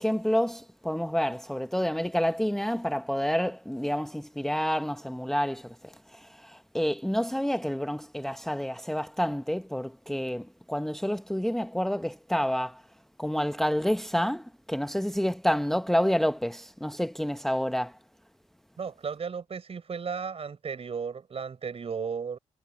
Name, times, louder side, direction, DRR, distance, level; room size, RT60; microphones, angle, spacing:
voice 1, 0.0-12.8 13.2-18.0, equal, ahead, 1.1 m, -29 dB
voice 2, 18.8-22.4, right 6 dB, 45° right, 4.8 m, -35 dB
hypercardioid pair, 50°, 14 cm